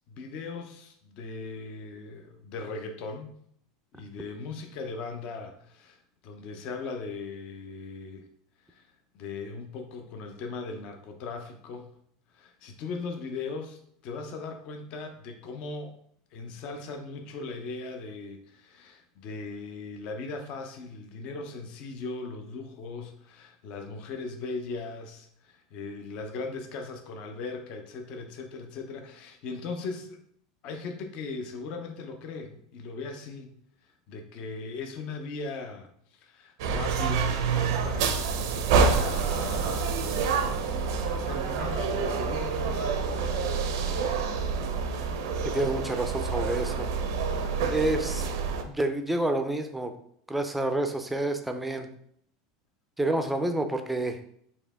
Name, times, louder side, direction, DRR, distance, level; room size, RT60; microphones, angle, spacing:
voice 1, 0.1-3.3 3.9-8.3 8.7-11.9 12.3-16.0 16.3-30.2 30.6-33.5 34.1-38.3 38.5-40.8 41.1-43.6, left 4 dB, 50° left, 5 dB, 0.6 m, -39 dB
sound 1, 36.6-48.6, right 5 dB, 80° right, 0.5 m, -27 dB
voice 2, 45.4-46.9 47.7-48.3 48.7-49.9 50.3-51.9 53.0-54.2, right 2 dB, 5° right, 6 dB, 0.4 m, -28 dB
4.3 x 2.8 x 3.4 m, 0.68 s
supercardioid pair, 135°, 2 cm